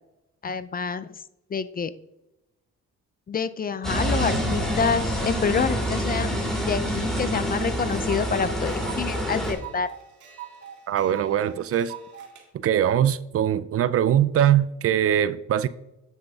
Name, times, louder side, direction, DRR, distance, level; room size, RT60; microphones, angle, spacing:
voice 1, 0.4-1.1 1.5-1.9 3.3-6.4 6.7-9.9, left 6 dB, 30° left, 0.4 m, -27 dB
sound 1, 3.8-9.5, equal, ahead, 2.8 m, -27 dB
sound 2, 7.4-12.4, right 9 dB, 75° right, 1.9 m, -43 dB
voice 2, 10.9-11.9 12.6-15.7, right 10 dB, 50° right, 0.4 m, -22 dB
9.8 x 7.8 x 2.4 m
cardioid pair, 90°, 30 cm